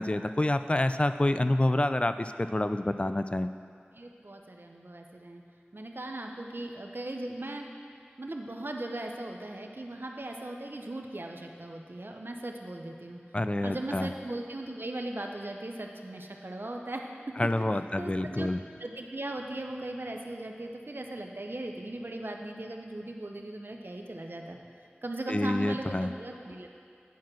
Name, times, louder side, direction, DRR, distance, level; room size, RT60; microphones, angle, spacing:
voice 1, 0.0-3.5 13.3-14.1 17.4-18.6 25.3-26.1, left 1 dB, 30° left, 10 dB, 0.3 m, -27 dB
voice 2, 3.9-5.4 5.7-7.7 8.2-13.2 13.6-17.4 18.0-18.5 18.8-24.6 25.0-26.8, right 1 dB, 65° right, 2 dB, 0.7 m, -38 dB
9.3 x 4.8 x 6.0 m, 2.4 s
wide cardioid pair, 45°, 4 cm